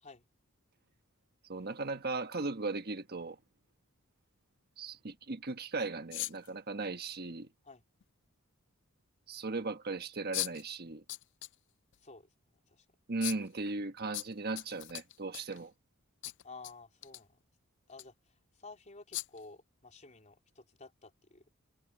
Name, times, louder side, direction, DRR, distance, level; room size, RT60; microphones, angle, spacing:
voice 1, 1.5-3.4 4.8-7.5 9.3-11.0 13.1-15.7, right 3 dB, 45° right, 1.4 m, -37 dB
sound 1, 6.1-6.5 8.0-8.1 10.3-10.6 11.1-11.5 11.9-12.0 13.2-13.5 14.1-15.6 16.2-16.7 17.0-17.2 17.9-18.0 19.1-19.4, left 17 dB, 55° left, 0.4 m, -38 dB
voice 2, 12.0-12.9 16.4-17.4 17.9-21.4, left 3 dB, 35° left, 4.1 m, -53 dB
head